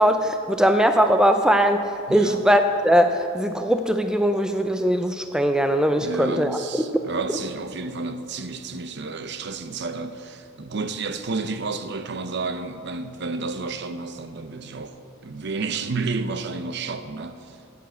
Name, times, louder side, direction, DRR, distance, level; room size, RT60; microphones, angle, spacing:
voice 1, 0.0-1.8 2.1-6.6, equal, 5° right, 0.4 m, -20 dB
voice 2, 2.1-2.4 6.0-15.0 15.2-17.6, right 3 dB, 55° right, 0.7 m, -31 dB
9.2 x 8.6 x 7.9 m
head